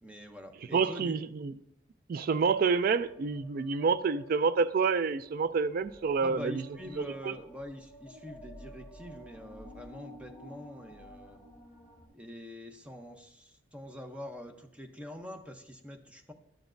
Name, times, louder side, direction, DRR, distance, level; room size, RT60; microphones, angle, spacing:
voice 1, 0.0-1.2 6.2-11.4 12.1-16.3, left 1 dB, 5° right, 0.7 m, -45 dB
voice 2, 0.7-1.5 2.1-6.6 7.0-7.4, right 5 dB, 50° right, 0.3 m, -28 dB
sound 1, 2.3-12.1, equal, 15° left, 3.6 m, -52 dB
12.0 x 7.0 x 2.6 m
head